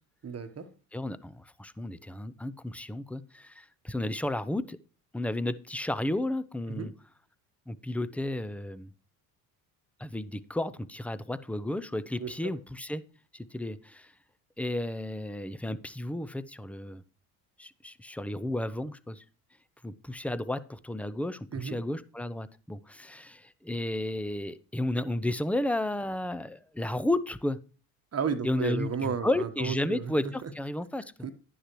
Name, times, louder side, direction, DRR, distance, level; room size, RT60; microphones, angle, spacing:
voice 1, 0.2-0.7 6.7-6.9 12.2-12.3 21.5-21.8 28.1-30.1 31.2-31.3, right 6 dB, 35° right, 1.2 m, -32 dB
voice 2, 0.9-4.8 5.1-6.9 7.7-8.9 10.0-13.0 13.3-14.1 14.6-17.0 17.6-19.2 19.8-27.6 28.4-31.0, left 1 dB, 5° left, 0.6 m, -33 dB
11.5 x 9.9 x 3.1 m
hypercardioid pair, 65°, 44 cm